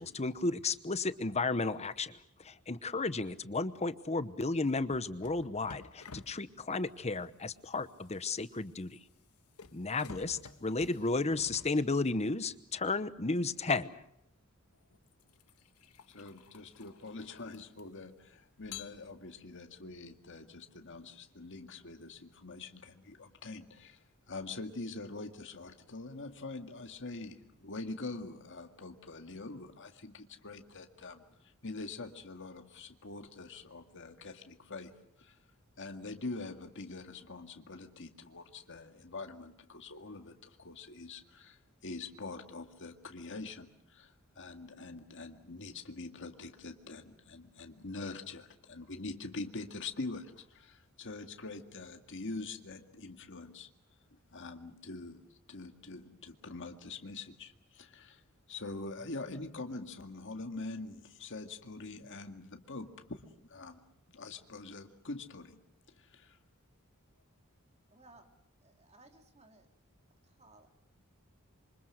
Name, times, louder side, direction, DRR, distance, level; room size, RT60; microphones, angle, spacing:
voice 1, 0.0-9.0 9.7-14.0, left 3 dB, 30° left, 13 dB, 1.0 m, -33 dB
sound 1, 4.9-12.5 13.8-14.0 14.7-18.1 18.6-19.5, left 5 dB, 85° left, 1.4 m, -52 dB
voice 2, 16.1-34.9 35.2-35.4 35.8-53.7 54.3-58.2 58.5-63.8 64.1-65.6 66.0-66.4, left 3 dB, 60° left, 5 dB, 2.0 m, -44 dB
voice 3, 67.9-68.3 68.6-69.7 70.4-70.7, right 2 dB, 30° right, 5 dB, 2.7 m, -59 dB
27.0 x 25.0 x 6.4 m, 0.75 s
head